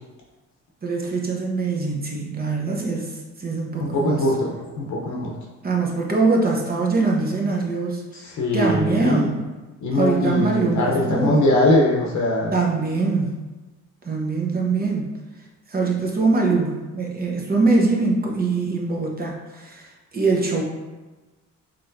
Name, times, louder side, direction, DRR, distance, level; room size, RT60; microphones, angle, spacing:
voice 1, 0.8-4.3 5.6-8.0 8.5-9.4 9.9-11.4 12.5-13.4 14.0-15.1 15.7-19.9 20.1-20.6, right 3 dB, 30° right, -1 dB, 0.8 m, -23 dB
voice 2, 3.8-5.3 8.1-9.3 9.8-12.5, left 1 dB, 70° left, -2 dB, 0.8 m, -21 dB
4.5 x 3.0 x 2.6 m, 1.2 s
cardioid pair, 90°, 30 cm